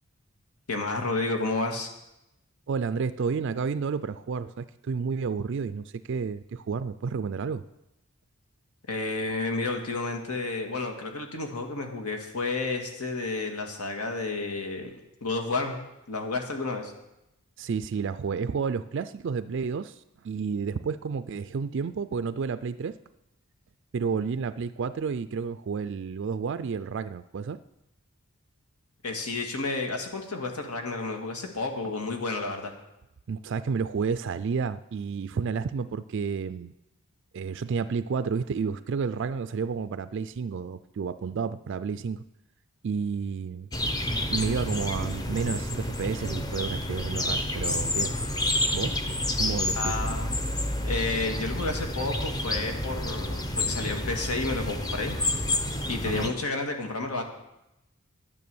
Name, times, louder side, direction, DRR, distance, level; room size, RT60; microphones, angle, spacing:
voice 1, 0.7-1.9 8.9-14.9 15.2-15.8 16.1-16.9 29.0-32.8 49.8-50.4 50.8-55.4 55.9-57.2, left 3 dB, 90° left, 3 dB, 1.9 m, -31 dB
voice 2, 2.7-7.6 17.6-23.0 23.9-27.6 33.3-36.7 37.3-42.2 42.8-43.7 44.3-48.1 48.7-49.0 49.4-50.0 56.0-56.3, right 5 dB, 55° right, 12 dB, 0.3 m, -31 dB
sound 1, 43.7-56.3, left 1 dB, 15° left, 0.7 m, -29 dB
11.0 x 9.4 x 7.0 m, 0.90 s
head